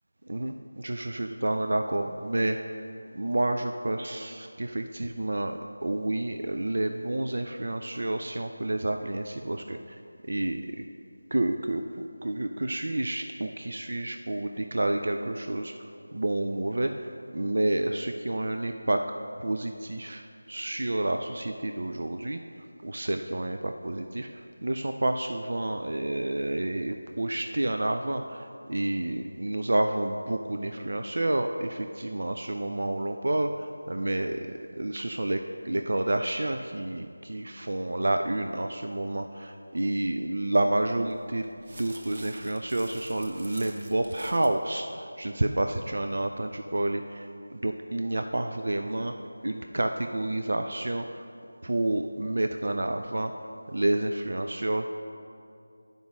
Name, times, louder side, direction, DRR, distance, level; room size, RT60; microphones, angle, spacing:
voice 1, 0.3-2.8 3.1-10.0 10.3-10.9 11.3-15.7 16.1-19.1 19.4-20.2 20.5-22.4 22.8-49.1 49.4-51.2 51.6-53.3 53.7-54.9, right 1 dB, 65° right, 6 dB, 0.4 m, -29 dB
sound 1, 41.0-44.6, right 2 dB, 40° right, 0.9 m, -47 dB
9.5 x 5.3 x 6.1 m, 2.5 s
figure-of-eight pair, 170°, 0 cm